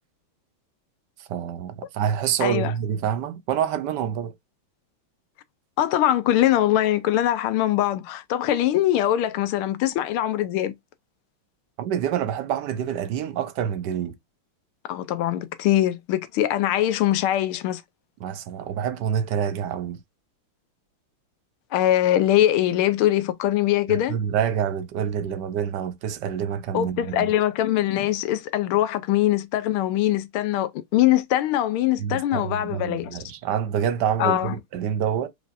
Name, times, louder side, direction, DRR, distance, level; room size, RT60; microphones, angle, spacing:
voice 1, 1.3-4.3 11.8-14.2 18.2-20.0 23.9-27.3 32.0-35.3, right 8 dB, 70° right, 1.1 m, -27 dB
voice 2, 2.4-2.7 5.8-10.7 14.9-17.8 21.7-24.2 26.7-33.2 34.2-34.5, left 13 dB, 85° left, 1.5 m, -22 dB
5.0 x 3.1 x 2.5 m
omnidirectional pair, 2.3 m